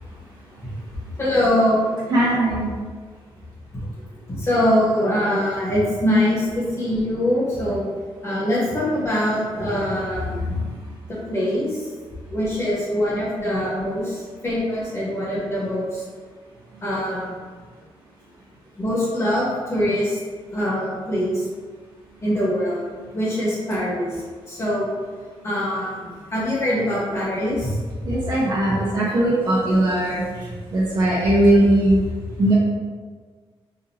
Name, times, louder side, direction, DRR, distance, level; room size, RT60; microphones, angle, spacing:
voice 1, 1.2-1.9 4.2-7.9 8.2-10.3 11.1-11.9 12.3-16.0 16.8-17.4 18.8-20.2 20.5-21.5 22.2-22.8 23.1-24.9 25.4-27.8, left 1 dB, 25° left, -7 dB, 1.4 m, -23 dB
voice 2, 2.1-2.7 10.4-10.8 28.0-32.0 32.4-32.6, right 1 dB, 45° right, -7 dB, 0.8 m, -19 dB
5.1 x 2.6 x 2.8 m, 1.5 s
wide cardioid pair, 150°, 10 cm